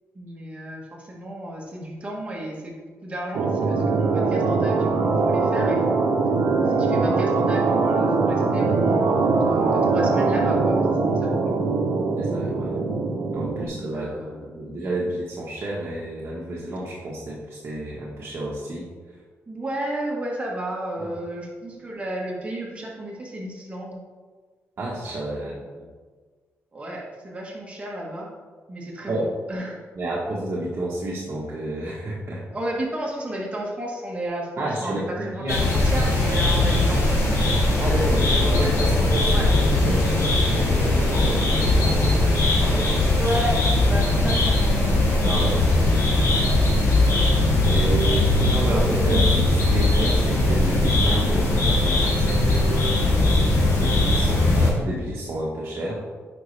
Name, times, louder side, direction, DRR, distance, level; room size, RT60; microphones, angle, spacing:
voice 1, 0.1-6.2 6.7-11.7 13.6-14.4 19.5-24.0 25.4-25.8 26.7-28.3 28.7-29.8 32.5-37.3 39.3-39.5 43.2-44.6, right 1 dB, 25° right, -2 dB, 1.6 m, -33 dB
sound 1, 3.3-13.7, right 4 dB, 75° right, 0.9 m, -22 dB
voice 2, 12.2-12.8 13.3-18.9 21.0-21.1 24.8-25.9 29.0-29.3 30.0-32.4 34.6-35.6 37.8-39.5 39.8-43.3 45.2-46.5 47.1-47.3 47.6-53.2 53.8-56.1, right 1 dB, 45° right, -5 dB, 1.3 m, -30 dB
sound 2, 35.5-54.7, left 2 dB, 85° left, 2.1 m, -20 dB
9.2 x 5.4 x 3.4 m, 1.5 s
cardioid pair, 130°, 5 cm